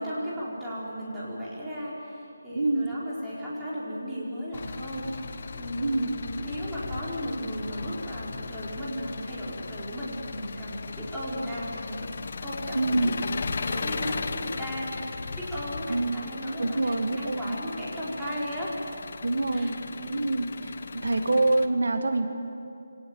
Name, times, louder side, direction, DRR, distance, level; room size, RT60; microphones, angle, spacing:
voice 1, 0.0-12.1 12.4-13.1 13.6-18.7 19.5-20.2, equal, 5° right, -9 dB, 4.5 m, -35 dB
voice 2, 2.5-2.9 5.8-6.1 12.8-13.1 15.9-16.2 16.6-17.6 19.2-19.7 20.1-22.3, right 2 dB, 75° right, 7 dB, 1.9 m, -26 dB
Engine, 4.5-21.7, left 4 dB, 45° left, 1.3 m, -37 dB
25.5 x 18.0 x 9.4 m, 2.6 s
figure-of-eight pair, 175°, 0 cm